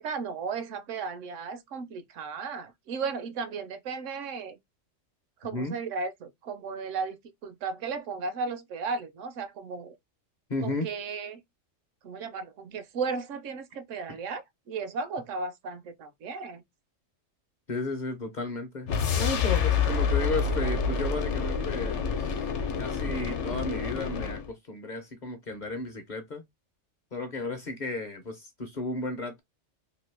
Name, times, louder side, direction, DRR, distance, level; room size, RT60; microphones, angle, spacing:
voice 1, 0.0-4.6 5.4-9.9 10.6-11.4 12.0-16.6, right 4 dB, 80° right, 1.0 m, -35 dB
voice 2, 10.5-10.9 14.1-14.2 17.7-22.4 22.8-26.4 27.1-29.4, left 2 dB, 45° left, 0.7 m, -34 dB
sound 1, 18.9-24.5, left 5 dB, 70° left, 1.0 m, -28 dB
2.9 x 2.5 x 3.2 m
omnidirectional pair, 1.3 m